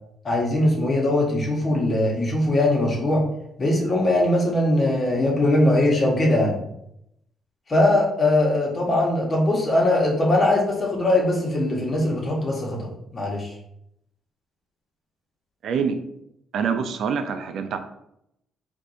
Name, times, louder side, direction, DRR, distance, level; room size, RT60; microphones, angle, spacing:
voice 1, 0.2-3.2 3.6-6.6 7.7-13.5, left 1 dB, 35° left, -1 dB, 1.2 m, -21 dB
voice 2, 15.6-16.0 16.5-17.8, right 6 dB, 70° right, 8 dB, 0.4 m, -25 dB
4.5 x 2.6 x 2.7 m, 0.77 s
cardioid pair, 90°, 0 cm